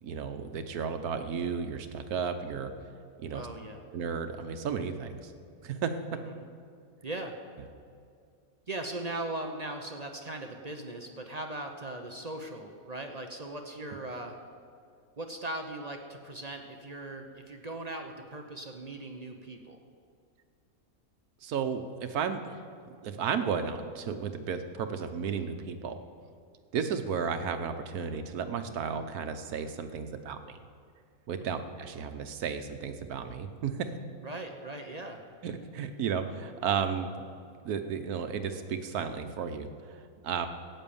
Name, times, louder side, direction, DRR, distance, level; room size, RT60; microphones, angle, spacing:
voice 1, 0.0-2.7 3.2-3.5 3.9-5.3 5.6-5.9 21.4-26.0 26.7-30.6 31.3-33.9 35.4-37.3 37.6-40.5, right 6 dB, 90° right, 8 dB, 1.4 m, -33 dB
voice 2, 3.3-3.8 7.0-7.4 8.7-14.4 15.2-19.8 34.2-35.2, right 2 dB, 35° right, 4 dB, 0.8 m, -39 dB
14.5 x 9.1 x 7.1 m, 2.3 s
omnidirectional pair, 1.5 m